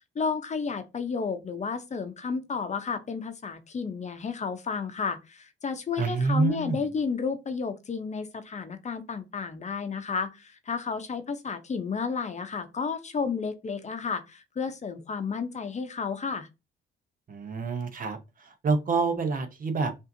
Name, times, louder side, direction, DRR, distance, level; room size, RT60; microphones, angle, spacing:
voice 1, 0.1-16.5, left 5 dB, 35° left, 0.8 m, -32 dB
voice 2, 6.0-6.8 17.3-18.2 18.6-20.0, right 4 dB, 45° right, 0.9 m, -27 dB
5.5 x 2.7 x 2.7 m
cardioid pair, 90°, 20 cm